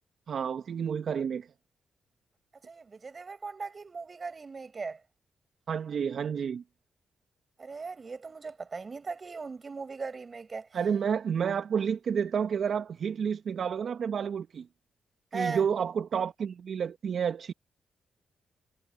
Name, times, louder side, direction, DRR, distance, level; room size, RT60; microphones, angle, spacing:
voice 1, 0.3-1.5 5.7-6.6 10.7-14.7 15.3-17.5, right 7 dB, 65° right, 1.2 m, -30 dB
voice 2, 2.6-5.0 7.6-10.7 15.3-15.6, right 4 dB, 45° right, 6.9 m, -38 dB
supercardioid pair, 45°, 0 cm